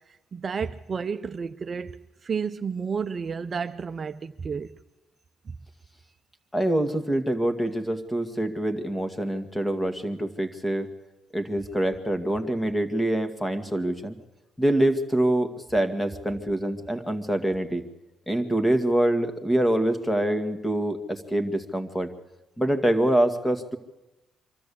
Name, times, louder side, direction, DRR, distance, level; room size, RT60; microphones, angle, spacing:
voice 1, 0.3-2.0 2.2-4.7 5.5-5.6, right 6 dB, 40° right, 0.6 m, -31 dB
voice 2, 6.5-10.9 11.3-14.2 14.6-17.8 18.3-22.1 22.6-23.8, right 1 dB, 10° left, 2.0 m, -25 dB
24.5 x 13.0 x 8.5 m
cardioid pair, 90°, 0 cm